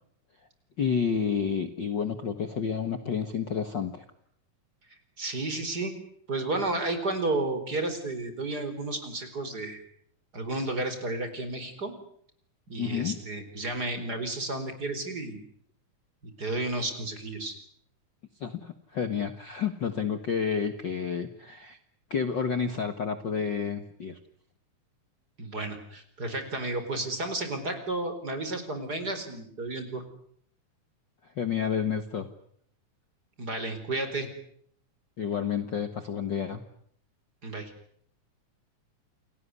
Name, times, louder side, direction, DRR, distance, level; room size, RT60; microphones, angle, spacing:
voice 1, 0.8-4.0 12.8-13.2 18.4-21.8 22.1-24.2 31.2-32.3 35.2-36.6, left 6 dB, 45° left, 9 dB, 1.8 m, -30 dB
voice 2, 5.2-5.9 6.3-9.8 10.3-11.9 12.7-15.4 16.2-17.6 25.4-30.0 33.4-34.3 37.4-37.7, right 2 dB, 30° right, 8 dB, 4.8 m, -32 dB
29.5 x 18.5 x 9.7 m, 0.68 s
omnidirectional pair, 3.4 m